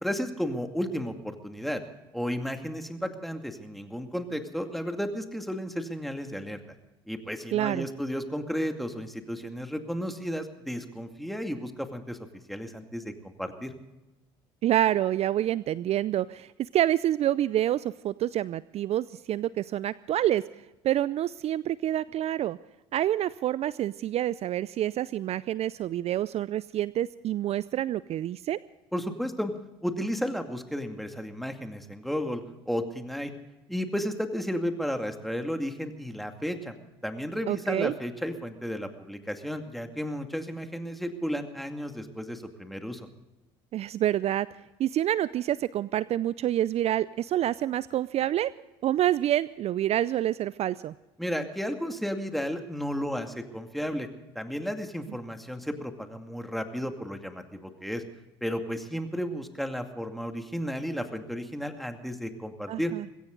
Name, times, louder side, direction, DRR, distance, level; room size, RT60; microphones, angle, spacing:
voice 1, 0.0-1.8 2.1-6.6 7.1-12.2 12.5-13.7 28.9-29.5 29.8-33.3 33.7-36.7 37.0-43.0 51.2-54.1 54.3-58.0 58.4-62.9, equal, ahead, 5 dB, 2.4 m, -33 dB
voice 2, 7.5-7.9 14.6-20.4 20.8-22.6 22.9-28.6 37.5-37.9 43.7-44.5 44.8-48.5 48.8-50.9 62.7-63.1, right 12 dB, 50° right, 19 dB, 0.5 m, -27 dB
21.0 x 16.5 x 3.9 m, 0.99 s
hypercardioid pair, 65°, 14 cm